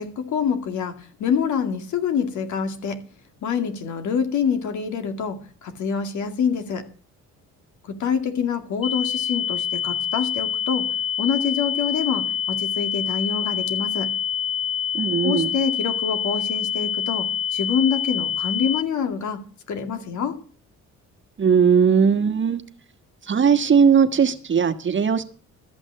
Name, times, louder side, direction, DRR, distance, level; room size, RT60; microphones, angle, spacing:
voice 1, 0.0-3.0 3.4-6.8 7.8-10.9 11.2-14.1 15.2-19.4 19.7-20.4, left 6 dB, 75° left, 6 dB, 2.3 m, -26 dB
sound 1, 8.8-18.8, left 9 dB, 20° left, 0.7 m, -26 dB
voice 2, 14.9-15.5 21.4-22.6 23.2-25.2, right 6 dB, 40° right, 8 dB, 1.4 m, -18 dB
13.5 x 6.1 x 8.7 m, 0.40 s
cardioid pair, 90°, 30 cm